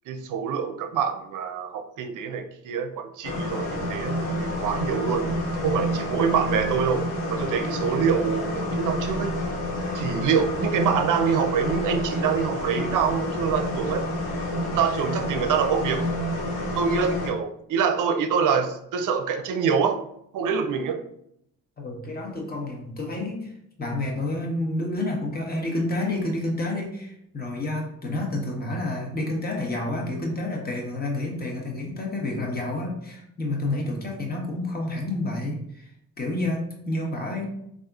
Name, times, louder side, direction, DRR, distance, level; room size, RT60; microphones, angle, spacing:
voice 1, 0.1-5.3 5.6-9.3 9.9-14.1 14.7-16.0 16.7-20.0 20.3-21.0, right 6 dB, 60° right, 7 dB, 0.5 m, -25 dB
sound 1, 3.2-17.3, left 1 dB, 85° left, 0.7 m, -29 dB
voice 2, 21.8-23.5 23.8-35.9 36.2-37.5, left 2 dB, 25° left, -1 dB, 1.0 m, -29 dB
3.4 x 2.5 x 2.3 m, 0.75 s
supercardioid pair, 60°, 35 cm